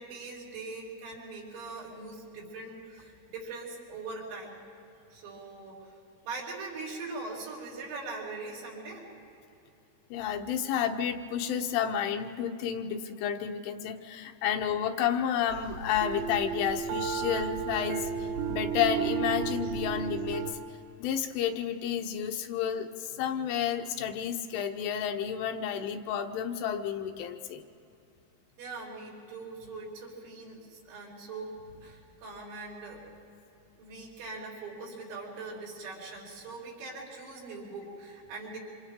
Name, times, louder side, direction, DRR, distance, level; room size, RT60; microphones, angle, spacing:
voice 1, 0.0-4.6 5.1-6.0 6.2-9.1 28.6-33.1 33.8-38.6, right 3 dB, 85° right, -4 dB, 6.6 m, -41 dB
voice 2, 10.1-20.4 21.0-27.6, left 9 dB, 80° left, 5 dB, 3.2 m, -31 dB
sound 1, 15.5-20.5, right 6 dB, 65° right, 2.7 m, -33 dB
27.5 x 26.5 x 3.7 m, 2.8 s
omnidirectional pair, 5.6 m